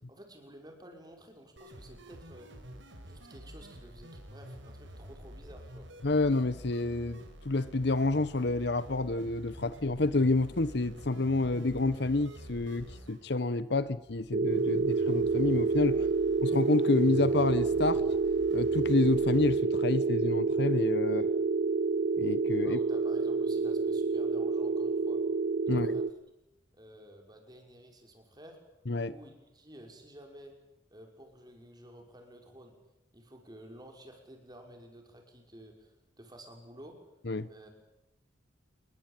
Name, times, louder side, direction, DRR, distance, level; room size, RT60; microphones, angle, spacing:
voice 1, 0.1-2.5 3.1-5.9 15.9-16.1 21.1-21.3 22.6-25.2 25.7-26.0 26.7-28.6 29.1-30.6 30.9-32.8 33.1-37.0 37.5-37.7, equal, 20° right, 3 dB, 5.9 m, -52 dB
sound 1, 1.6-19.6, equal, 75° right, 5.2 m, -48 dB
voice 2, 6.0-16.0 16.4-18.0 18.5-21.2 22.2-22.8 25.7-25.9 28.9-29.1 37.3-37.5, left 2 dB, 60° left, 16 dB, 1.0 m, -28 dB
sound 2, 14.3-26.1, right 4 dB, 45° right, 1.0 m, -28 dB
29.0 x 21.0 x 9.1 m, 0.89 s
head